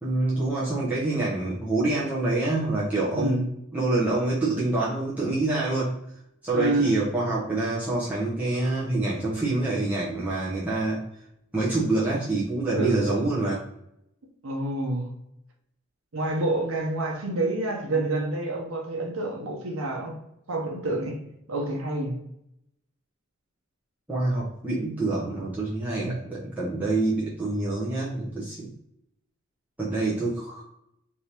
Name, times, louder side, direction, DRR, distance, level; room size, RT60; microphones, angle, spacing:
voice 1, 0.0-3.4 3.7-5.9 6.4-11.0 11.5-13.6 24.1-28.7 29.8-30.6, right 2 dB, 5° right, -8 dB, 0.7 m, -26 dB
voice 2, 3.1-3.5 6.5-7.0 12.7-13.0 14.4-15.1 16.1-20.2 20.5-21.2 21.5-22.1 26.0-26.2, right 2 dB, 80° right, -1 dB, 0.8 m, -28 dB
3.4 x 2.7 x 2.9 m, 0.80 s
head